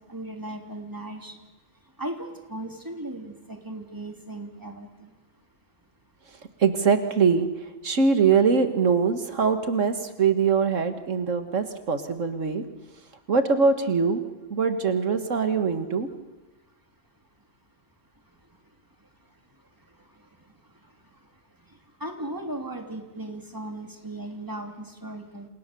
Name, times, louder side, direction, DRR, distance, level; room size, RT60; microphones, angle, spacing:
voice 1, 0.0-1.3 2.0-5.1 22.0-25.5, right 1 dB, 15° right, 3 dB, 3.3 m, -37 dB
voice 2, 6.6-12.6 13.3-14.2 14.5-16.1, right 5 dB, 85° right, 8 dB, 2.0 m, -23 dB
29.5 x 28.5 x 6.9 m, 1.1 s
omnidirectional pair, 1.3 m